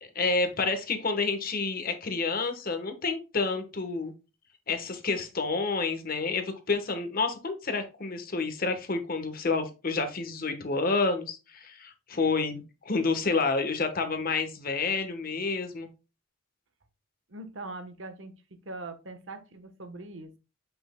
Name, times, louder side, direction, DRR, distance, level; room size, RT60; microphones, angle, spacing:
voice 1, 0.0-4.1 4.7-15.9, left 4 dB, 45° left, 7 dB, 1.1 m, -29 dB
voice 2, 17.3-18.3 18.6-20.4, right 2 dB, 70° right, 9 dB, 1.1 m, -41 dB
7.8 x 5.8 x 2.2 m, 0.30 s
head